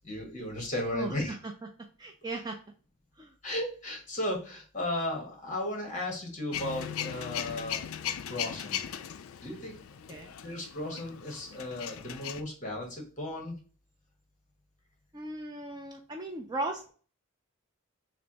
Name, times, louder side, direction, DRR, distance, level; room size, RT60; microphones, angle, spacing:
voice 1, 0.0-1.4 3.4-7.9 8.2-8.8 9.4-9.8 10.1-10.2 10.4-13.5, left 1 dB, 35° left, 1 dB, 1.3 m, -35 dB
voice 2, 0.9-1.5 2.0-2.6 3.2-3.3 10.1-10.3 15.1-16.9, right 2 dB, 20° right, 3 dB, 0.3 m, -37 dB
Male speech man speaking / Vehicle / Engine starting, 6.5-12.4, left 9 dB, 70° left, 0.3 m, -38 dB
3.3 x 2.5 x 3.9 m, 0.39 s
head